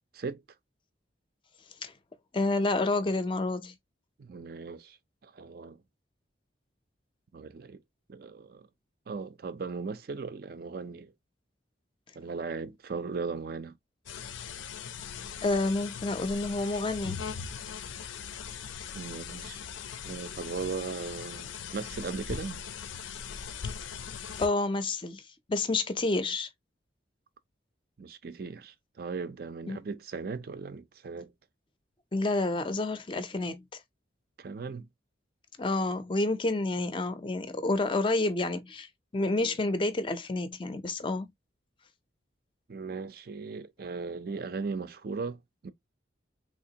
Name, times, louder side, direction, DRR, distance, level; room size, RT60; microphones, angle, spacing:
voice 1, 2.3-3.7 15.4-17.2 24.4-25.2 25.5-26.5 29.7-29.8 32.1-33.6 35.6-41.3, left 2 dB, 25° left, 0.4 m, -29 dB
voice 2, 4.2-5.8 7.3-7.8 8.1-8.7 9.1-11.1 12.1-13.7 18.9-19.6 20.1-22.6 28.0-31.3 34.4-34.9 42.7-45.7, right 4 dB, 50° right, 0.4 m, -38 dB
sound 1, 14.1-24.5, left 7 dB, 85° left, 0.5 m, -40 dB
3.4 x 2.8 x 2.7 m
head